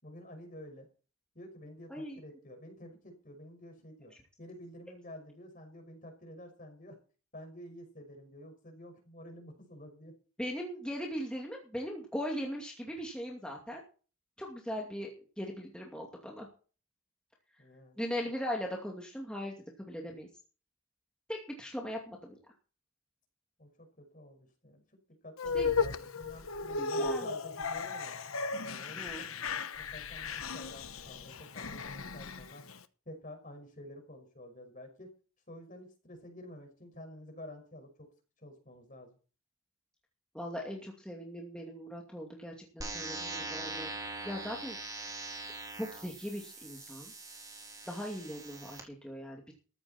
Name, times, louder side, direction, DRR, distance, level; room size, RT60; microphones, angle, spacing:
voice 1, 0.0-0.9 1.3-4.1 4.4-7.0 7.3-10.1 17.6-18.0 23.6-25.0 25.2-28.2 28.7-29.2 29.8-32.6 33.1-35.1 35.5-38.1 38.4-39.2, left 1 dB, 40° left, 5 dB, 5.7 m, -50 dB
voice 2, 10.4-13.8 14.4-15.1 15.4-16.5 18.0-19.5 19.9-20.3 21.3-22.4 25.5-25.7 26.8-27.3 28.9-29.3 40.3-43.9 44.2-44.8 45.8-47.1 47.9-49.5, equal, 5° left, -1 dB, 2.4 m, -39 dB
sound 1, 25.4-32.8, left 4 dB, 80° left, 1.1 m, -35 dB
sound 2, 42.8-48.8, right 3 dB, 15° right, 3.8 m, -42 dB
14.5 x 12.0 x 4.4 m, 0.37 s
head